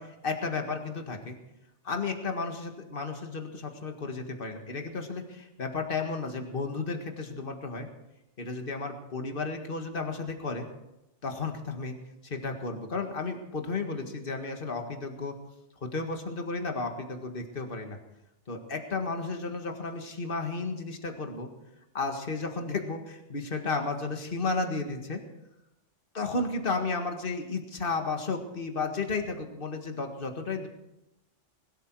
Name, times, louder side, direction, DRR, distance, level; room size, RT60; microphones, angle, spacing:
voice 1, 0.0-1.4 1.8-7.9 8.4-10.7 11.2-11.9 12.4-15.3 15.8-18.0 18.5-21.5 21.9-25.2 26.1-30.7, left 3 dB, 45° left, 4 dB, 2.0 m, -33 dB
21.0 x 13.0 x 4.7 m, 0.90 s
omnidirectional pair, 1.3 m